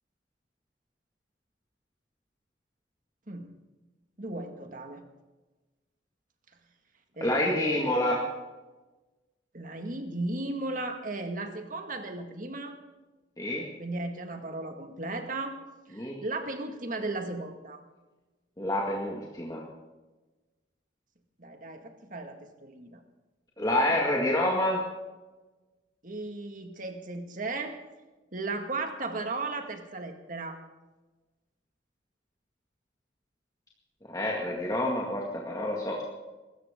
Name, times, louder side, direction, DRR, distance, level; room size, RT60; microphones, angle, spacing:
voice 1, 4.2-5.0 7.2-8.1 9.5-12.8 13.8-15.5 15.9-17.8 21.4-23.0 23.9-24.0 26.0-27.8 28.3-30.6, right 2 dB, 45° right, 5 dB, 1.9 m, -36 dB
voice 2, 7.2-8.3 13.4-13.7 16.0-16.2 18.6-19.6 23.6-24.9 34.1-36.0, left 1 dB, 20° left, -3 dB, 2.0 m, -28 dB
23.5 x 13.5 x 3.7 m, 1.2 s
head